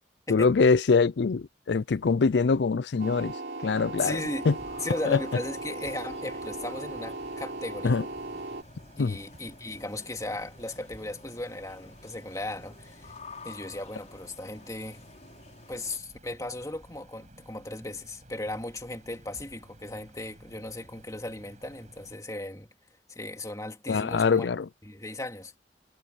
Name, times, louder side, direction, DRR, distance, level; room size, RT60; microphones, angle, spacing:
voice 1, 0.3-3.4 3.6-4.2 4.5-4.6 5.1-5.2 7.8-8.1 9.0-9.2 23.9-24.7, left 4 dB, 75° left, 0.5 m, -23 dB
sound 1, 3.0-8.6, right 2 dB, 65° right, 3.5 m, -37 dB
voice 2, 4.0-4.5 4.8-8.0 9.0-13.1 13.4-15.0 15.7-22.7 23.1-24.5 24.9-25.6, left 1 dB, 20° left, 2.7 m, -36 dB
sound 2, 4.0-22.2, right 1 dB, 40° right, 7.8 m, -53 dB
sound 3, 4.2-16.0, left 4 dB, 40° left, 6.0 m, -52 dB
head